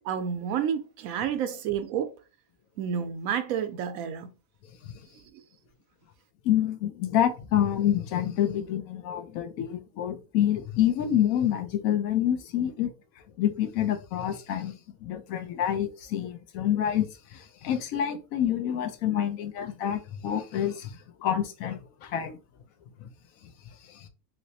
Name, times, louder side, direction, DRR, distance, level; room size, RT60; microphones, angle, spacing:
voice 1, 0.0-2.1 2.8-4.3, right 8 dB, 75° right, 1.0 m, -30 dB
voice 2, 6.4-12.9 13.4-22.3 23.0-23.1 23.9-24.1, left 10 dB, 75° left, 1.0 m, -27 dB
3.2 x 2.9 x 2.7 m
omnidirectional pair, 1.6 m